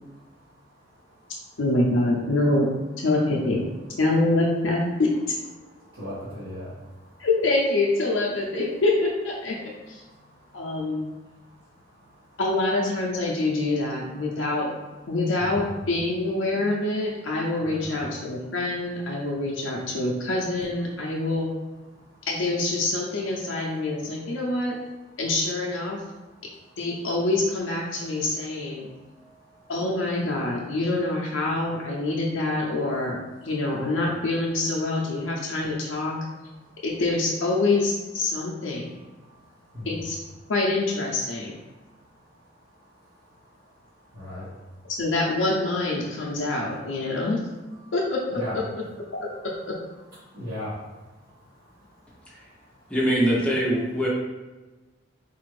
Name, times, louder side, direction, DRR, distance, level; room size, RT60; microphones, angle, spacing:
voice 1, 1.6-2.7 3.0-3.7 4.0-5.1 7.2-9.5 9.9-10.0 10.5-11.1 12.4-14.7 15.1-21.5 22.3-24.8 25.2-26.0 26.8-28.9 29.7-33.2 33.4-36.2 36.8-38.9 39.9-40.2 40.5-41.6 45.0-47.4 47.9-48.6 49.1-49.2, left 2 dB, 85° left, -3 dB, 0.5 m, -25 dB
voice 2, 5.8-6.8 15.4-15.8 17.6-17.9 29.2-29.3 39.7-39.9 44.1-44.5 48.3-48.5 50.3-50.8, left 1 dB, 75° right, -12 dB, 1.4 m, -36 dB
voice 3, 52.9-54.1, equal, 5° left, -5 dB, 0.7 m, -22 dB
4.0 x 2.5 x 3.2 m, 1.2 s
head